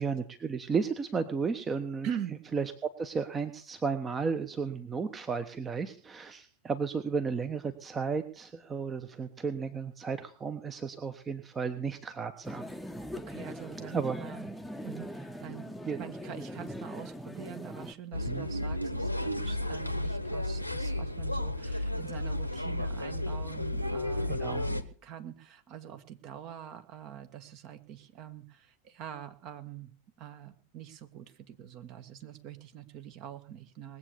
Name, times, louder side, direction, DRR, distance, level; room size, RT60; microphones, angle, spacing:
voice 1, 0.0-2.1 2.5-2.7 3.0-12.7 13.9-14.2 15.9-16.0 18.3-18.5 24.3-24.6, right 5 dB, 20° right, 9 dB, 1.1 m, -33 dB
voice 2, 2.0-2.4 13.1-14.5 14.8-29.9 30.2-34.0, right 9 dB, 40° right, 8 dB, 1.6 m, -44 dB
sound 1, 12.4-17.9, equal, ahead, 1.0 m, -41 dB
sound 2, 18.1-24.8, left 1 dB, 90° left, 1.1 m, -33 dB
20.0 x 8.2 x 6.7 m, 0.43 s
figure-of-eight pair, 90°, 0 cm